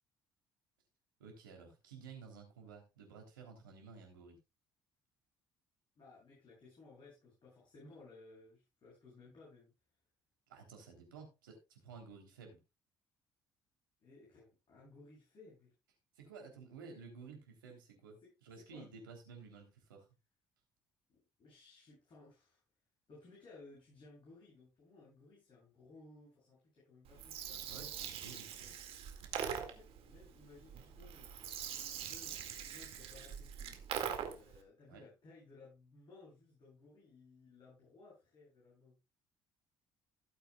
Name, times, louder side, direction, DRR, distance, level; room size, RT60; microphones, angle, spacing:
voice 1, 1.2-4.4 10.5-12.6 16.1-20.1 27.5-28.7 34.9-35.0, right 5 dB, 85° right, 3 dB, 3.4 m, -53 dB
voice 2, 5.9-9.7 14.0-15.7 18.2-19.0 21.1-22.6 23.1-27.6 29.3-33.7 34.3-39.0, left 3 dB, 45° left, -5 dB, 7.9 m, -59 dB
Gurgling, 27.1-34.6, right 8 dB, 65° right, 2.1 m, -43 dB
16.5 x 8.8 x 2.3 m, 0.25 s
hypercardioid pair, 55°, 11 cm